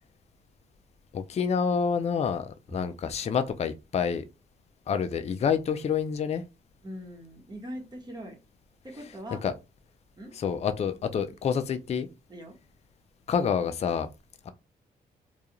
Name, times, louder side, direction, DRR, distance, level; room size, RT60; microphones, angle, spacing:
voice 1, 1.1-4.2 4.9-6.4 9.4-9.5 10.3-12.1 13.3-14.1, left 6 dB, 40° left, 0.4 m, -28 dB
voice 2, 6.8-8.4 8.8-9.4 10.2-10.3 12.3-12.5, equal, 25° right, 1.1 m, -41 dB
2.4 x 2.3 x 2.9 m
supercardioid pair, 60°, 17 cm